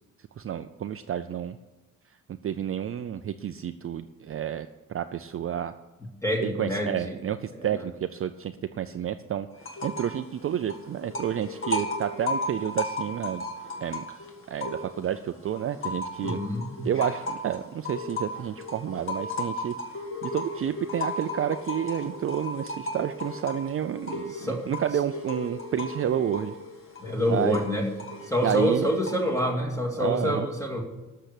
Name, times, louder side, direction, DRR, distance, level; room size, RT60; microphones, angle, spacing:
voice 1, 0.4-1.6 2.4-5.7 6.4-9.5 9.8-13.4 13.8-14.0 14.5-16.4 16.8-19.7 20.2-26.5 27.3-27.6 28.4-28.9 30.0-30.5, right 10 dB, 40° right, 9 dB, 0.4 m, -30 dB
voice 2, 6.2-7.2 7.6-7.8 16.2-16.9 24.3-24.6 27.0-27.9 28.3-30.8, equal, 10° left, 1 dB, 2.0 m, -27 dB
sound 1, 9.6-10.2 10.5-15.2 15.5-29.4, left 2 dB, 35° left, 1.7 m, -35 dB
12.5 x 6.7 x 8.3 m, 1.1 s
wide cardioid pair, 155°, 34 cm